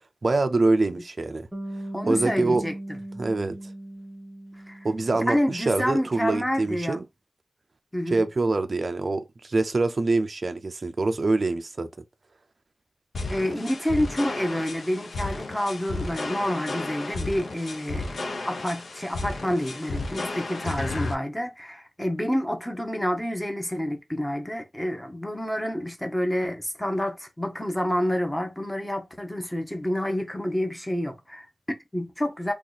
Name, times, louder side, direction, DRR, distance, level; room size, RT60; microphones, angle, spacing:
voice 1, 0.2-1.5 2.1-2.6 3.2-3.6 4.8-7.0 8.1-11.9, right 3 dB, 50° right, 0.4 m, -25 dB
Bass guitar, 1.5-5.8, right 1 dB, 15° right, 1.0 m, -38 dB
voice 2, 1.9-2.7 4.7-4.9 5.1-7.0 7.9-8.3 13.3-32.5, equal, 10° left, 0.8 m, -28 dB
sound 1, 13.1-21.1, left 2 dB, 80° left, 0.7 m, -33 dB
2.8 x 2.3 x 3.9 m
wide cardioid pair, 95°, 0 cm